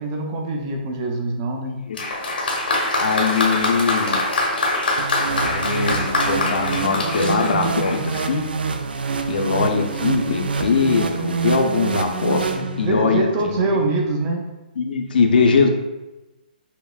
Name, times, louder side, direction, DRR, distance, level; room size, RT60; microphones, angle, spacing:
voice 1, 0.0-1.8 12.5-14.4, right 2 dB, 30° right, 2 dB, 0.5 m, -24 dB
Applause, 1.9-8.4, left 2 dB, 90° left, 1.0 m, -24 dB
voice 2, 3.0-4.2 5.4-8.4 9.3-12.5 12.8-13.6 14.8-15.7, left 5 dB, 75° left, 3 dB, 0.6 m, -21 dB
sound 1, 5.0-13.1, right 5 dB, 90° right, 0.3 m, -26 dB
5.6 x 2.0 x 2.3 m, 1.0 s
hypercardioid pair, 150°, 5 cm